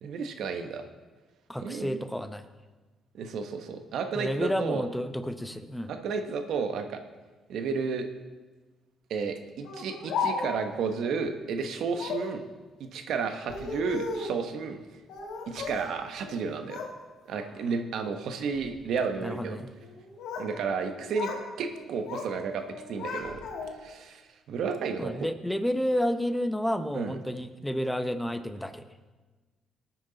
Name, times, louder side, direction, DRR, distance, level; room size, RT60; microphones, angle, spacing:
voice 1, 0.0-0.8 1.6-2.0 3.1-4.8 5.9-7.0 7.5-8.1 9.1-12.4 12.8-14.8 15.5-16.8 17.3-19.6 20.4-21.3 21.6-23.4 23.8-24.2 24.5-25.3 26.9-27.2, right 5 dB, 75° right, 7 dB, 1.2 m, -32 dB
voice 2, 1.5-2.4 4.1-5.9 19.2-19.7 25.0-28.9, equal, 5° left, 9 dB, 0.9 m, -30 dB
Speech, 9.6-10.7 11.9-12.3 13.3-14.4 15.1-15.9 16.2-16.9 17.3-17.7 18.4-18.7 19.8-20.5 20.8-21.5 21.7-22.3 22.7-23.9, left 4 dB, 90° left, 2.3 m, -35 dB
19.0 x 9.1 x 4.1 m, 1.3 s
cardioid pair, 90°, 0 cm